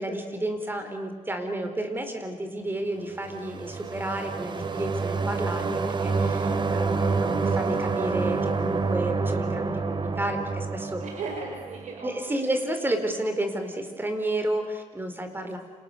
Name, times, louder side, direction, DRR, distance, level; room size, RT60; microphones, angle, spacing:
voice 1, 0.0-11.0 12.0-15.6, right 1 dB, 15° right, 6 dB, 4.5 m, -31 dB
sound 1, 3.3-12.0, right 4 dB, 35° right, 2.6 m, -28 dB
voice 2, 11.0-12.4, right 4 dB, 65° right, 0 dB, 5.7 m, -37 dB
29.5 x 27.5 x 7.0 m, 1.4 s
cardioid pair, 115°, 13 cm